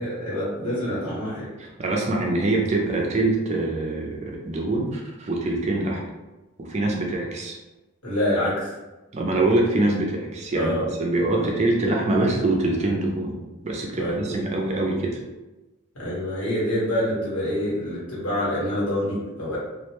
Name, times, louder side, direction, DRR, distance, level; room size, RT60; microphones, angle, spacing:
voice 1, 0.0-1.5 8.0-8.7 10.6-10.8 11.4-11.5 14.0-14.3 15.9-19.6, left 1 dB, 85° left, -7 dB, 1.3 m, -26 dB
voice 2, 1.6-6.0 6.6-7.6 9.1-13.4 13.6-15.2, right 2 dB, 30° right, -1 dB, 0.4 m, -24 dB
2.4 x 2.1 x 2.9 m, 1.1 s
head